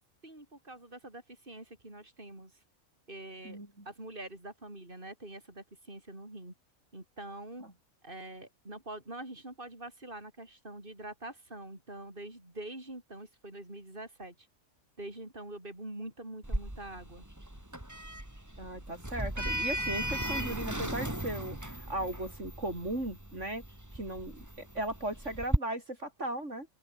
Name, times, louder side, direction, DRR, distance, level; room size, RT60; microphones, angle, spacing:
voice 1, 0.2-2.5 3.1-3.6 3.9-6.5 6.9-7.7 8.0-14.5 15.0-17.2, right 1 dB, 40° right, 7.0 m, -45 dB
voice 2, 3.4-3.9 18.6-23.6 23.9-26.7, right 1 dB, 60° right, 7.4 m, -37 dB
Sliding door, 16.4-25.6, right 1 dB, 10° right, 3.5 m, -36 dB
open air
omnidirectional pair, 1.4 m